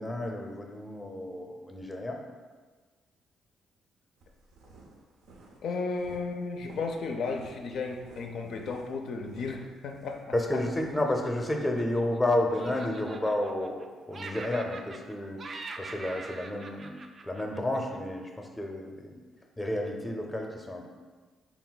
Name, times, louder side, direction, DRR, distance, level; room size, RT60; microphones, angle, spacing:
voice 1, 0.0-2.2 10.3-15.4 15.8-16.9 17.2-19.1 19.6-20.9, left 1 dB, 10° left, 2 dB, 0.5 m, -31 dB
sound 1, 4.2-11.8, right 2 dB, 85° right, 0.6 m, -54 dB
voice 2, 5.6-10.2 10.5-10.6, left 4 dB, 70° left, 3 dB, 0.4 m, -34 dB
Laughter, 10.9-12.2 12.5-13.9 14.1-15.1 15.4-18.0, right 3 dB, 40° right, 0.3 m, -44 dB
4.2 x 2.2 x 3.9 m, 1.4 s
cardioid pair, 90°, 0 cm